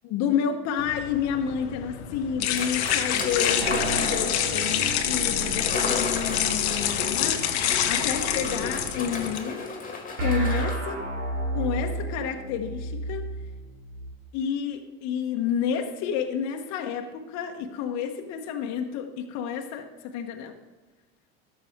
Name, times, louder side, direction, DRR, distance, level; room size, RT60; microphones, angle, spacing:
voice 1, 0.0-9.6 10.2-11.0 11.5-13.3 14.3-20.5, left 7 dB, 55° left, 4 dB, 1.1 m, -30 dB
sound 1, 0.8-9.4, left 10 dB, 80° left, 0.9 m, -27 dB
sound 2, 2.5-4.5 5.4-10.8, left 4 dB, 25° left, 1.9 m, -34 dB
sound 3, 3.6-8.9 10.2-14.1, right 2 dB, 85° right, 2.4 m, -33 dB
12.5 x 6.8 x 3.6 m, 1.1 s
hypercardioid pair, 90°, 33 cm